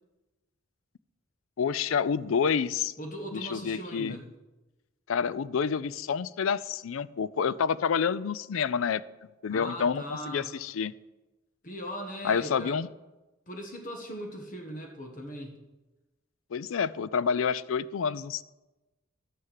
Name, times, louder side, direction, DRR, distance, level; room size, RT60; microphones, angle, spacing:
voice 1, 1.6-2.9 3.3-4.2 5.1-9.0 9.4-10.9 12.2-12.9 16.5-18.4, left 6 dB, 90° left, 18 dB, 0.4 m, -28 dB
voice 2, 3.0-4.2 9.5-10.5 11.6-12.8 13.5-15.5, equal, 40° left, 2 dB, 1.4 m, -39 dB
12.0 x 6.5 x 7.4 m, 1.1 s
head